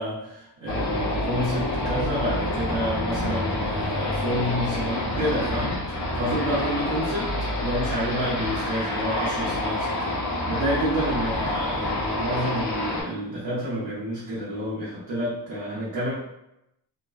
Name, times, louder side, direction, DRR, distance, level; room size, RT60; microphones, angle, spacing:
voice 1, 0.0-7.3 7.6-16.1, equal, 80° right, -9 dB, 0.9 m, -29 dB
sound 1, 0.7-13.0, left 1 dB, 45° left, 0.8 m, -28 dB
2.7 x 2.1 x 2.4 m, 0.85 s
cardioid pair, 60°, 43 cm